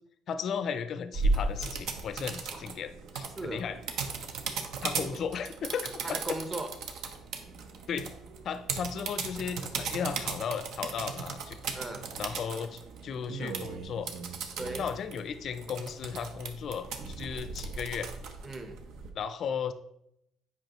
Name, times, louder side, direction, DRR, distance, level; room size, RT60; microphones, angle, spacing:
voice 1, 0.3-3.8 4.8-6.2 7.9-8.1 8.4-11.8 12.2-14.1 14.8-18.1 19.1-19.7, left 7 dB, 50° left, 11 dB, 0.4 m, -35 dB
sound 1, 1.1-19.1, right 4 dB, 70° right, 0.8 m, -36 dB
voice 2, 6.0-6.7 11.7-12.1 14.6-14.9 18.4-18.8, right 2 dB, 25° right, 6 dB, 0.9 m, -37 dB
7.7 x 5.0 x 3.0 m, 0.80 s
cardioid pair, 120°, 0 cm